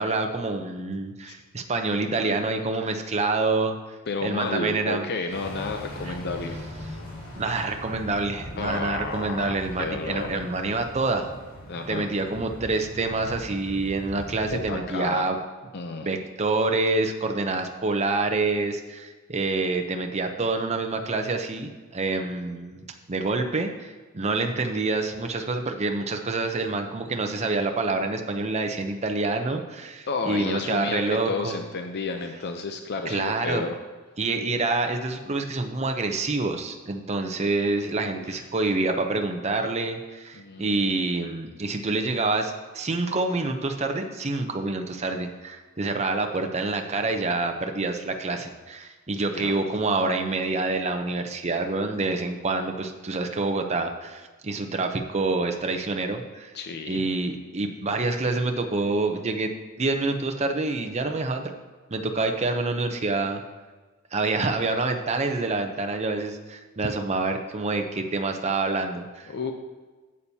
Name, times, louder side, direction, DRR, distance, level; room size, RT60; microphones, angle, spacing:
voice 1, 0.0-3.8 4.2-5.1 6.1-6.2 7.4-11.3 11.9-15.4 16.0-31.6 33.1-33.7 34.2-56.5 56.9-59.5 59.8-61.5 61.9-63.4 64.1-69.5, right 3 dB, 30° right, 5 dB, 0.7 m, -27 dB
voice 2, 4.1-6.5 8.6-10.4 11.7-12.1 14.4-15.2 15.7-16.1 30.1-33.7 38.1-38.4 40.3-40.8 49.3-49.6 56.5-57.0 69.3-69.5, left 4 dB, 50° left, 5 dB, 0.6 m, -31 dB
sound 1, 5.3-14.6, equal, 70° left, 3.1 m, -40 dB
11.5 x 8.5 x 2.8 m, 1.3 s
head